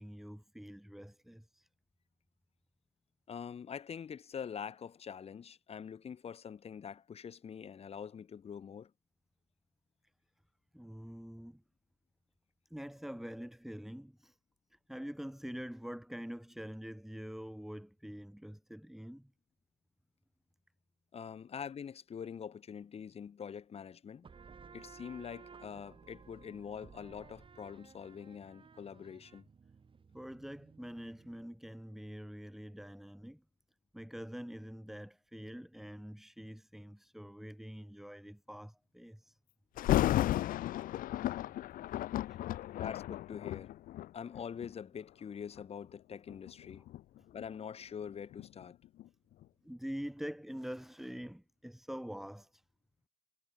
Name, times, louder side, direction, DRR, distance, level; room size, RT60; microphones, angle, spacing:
voice 1, 0.0-1.7 10.7-11.6 12.7-14.4 14.7-19.3 30.1-33.4 33.9-39.4 42.3-42.5 49.6-52.6, equal, ahead, 2.3 m, -45 dB
voice 2, 3.3-8.9 21.1-24.2 24.7-29.4 42.7-43.7 44.1-46.8 47.3-48.8, left 7 dB, 35° left, 1.4 m, -45 dB
sound 1, 24.2-31.5, right 5 dB, 30° right, 8.0 m, -56 dB
Thunder, 39.8-44.7 45.4-45.6 46.3-49.1 49.4-49.5, left 14 dB, 55° left, 0.4 m, -34 dB
cardioid pair, 110°, 17 cm